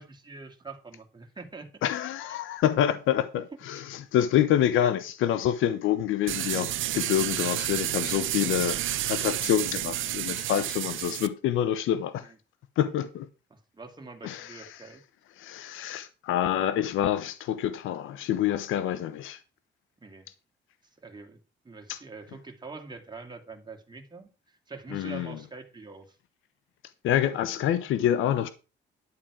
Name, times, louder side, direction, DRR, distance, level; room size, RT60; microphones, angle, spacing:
voice 1, 0.0-1.9 3.3-3.4 12.2-12.4 13.5-15.0 20.0-20.3 21.0-21.4 21.6-26.2, right 4 dB, 20° right, 2.5 m, -44 dB
voice 2, 1.8-12.3 12.8-13.3 14.2-14.5 15.4-19.4 21.9-22.0 24.9-25.4 27.0-28.5, left 11 dB, 85° left, 0.9 m, -27 dB
sound 1, 6.3-11.3, right 14 dB, 80° right, 0.8 m, -30 dB
11.5 x 7.4 x 4.9 m
cardioid pair, 90°, 20 cm